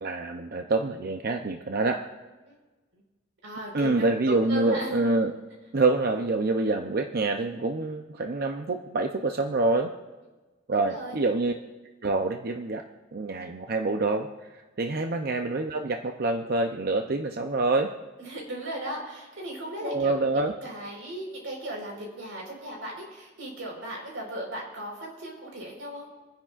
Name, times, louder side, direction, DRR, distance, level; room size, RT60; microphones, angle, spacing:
voice 1, 0.0-2.0 3.7-5.4 5.7-9.9 10.7-11.5 12.0-12.8 13.1-17.9 19.8-20.5, right 3 dB, 50° right, 4 dB, 0.6 m, -26 dB
voice 2, 3.4-3.9 4.2-5.1 10.7-11.2 14.8-15.0 18.2-26.1, right 1 dB, 90° right, -2 dB, 4.4 m, -37 dB
25.5 x 10.0 x 2.5 m, 1.2 s
head